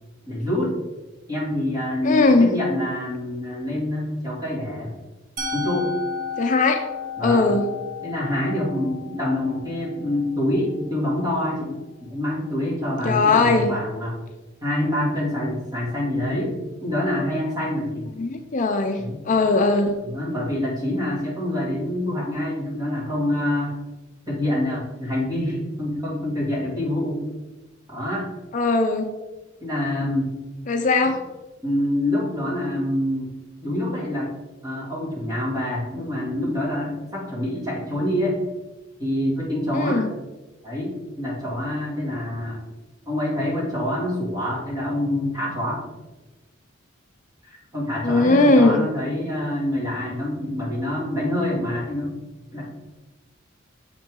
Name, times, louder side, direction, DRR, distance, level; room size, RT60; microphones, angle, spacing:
voice 1, 0.3-0.7 1.3-4.9 5.5-5.9 7.2-7.6 8.0-14.2 14.6-16.5 16.8-18.1 19.0-19.2 20.0-23.8 24.3-27.2 27.9-28.3 29.6-30.3 31.6-33.3 33.6-34.3 34.6-38.4 39.0-40.0 40.6-42.6 43.1-45.8 47.4-52.1 52.5-52.7, left 1 dB, 20° right, -5 dB, 2.5 m, -26 dB
voice 2, 2.0-2.5 6.4-6.8 7.2-7.7 13.0-13.7 18.2-20.0 28.5-29.1 30.7-31.2 39.7-40.1 48.0-48.8, left 3 dB, 40° left, 5 dB, 0.5 m, -19 dB
Musical instrument, 5.4-11.3, left 5 dB, 45° right, 1.9 m, -34 dB
7.1 x 5.8 x 3.7 m, 1.1 s
head